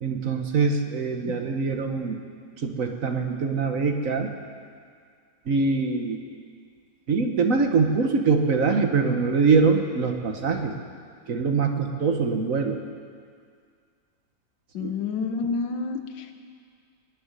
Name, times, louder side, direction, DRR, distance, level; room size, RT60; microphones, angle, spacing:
voice 1, 0.0-2.2 2.6-4.3 5.5-6.2 7.1-10.7 11.3-12.8 14.8-14.9, right 4 dB, 50° right, 4 dB, 1.4 m, -23 dB
voice 2, 14.7-16.4, left 4 dB, 85° left, 7 dB, 1.8 m, -29 dB
20.5 x 6.9 x 9.7 m, 2.1 s
omnidirectional pair, 2.0 m